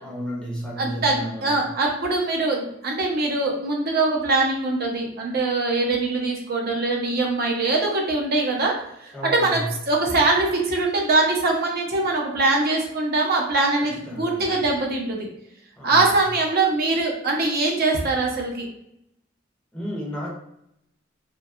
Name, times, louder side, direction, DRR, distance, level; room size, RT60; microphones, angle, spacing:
voice 1, 0.0-1.7 9.1-9.7 13.8-14.5 15.8-16.0 19.7-20.3, equal, 5° left, -3 dB, 0.5 m, -33 dB
voice 2, 0.8-8.7 9.0-15.3 15.8-18.7, right 3 dB, 55° right, 0 dB, 0.6 m, -22 dB
2.7 x 2.2 x 2.4 m, 0.80 s
head